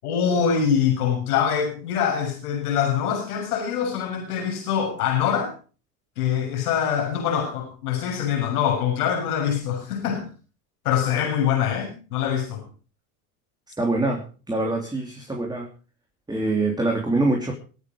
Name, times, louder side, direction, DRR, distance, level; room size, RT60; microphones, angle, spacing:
voice 1, 0.0-5.5 6.2-10.3 10.9-12.6, left 8 dB, 90° left, 2 dB, 7.1 m, -24 dB
voice 2, 13.8-15.7 16.3-17.5, right 2 dB, 10° right, 1 dB, 3.3 m, -24 dB
23.5 x 9.1 x 5.2 m, 0.38 s
supercardioid pair, 100°, 44 cm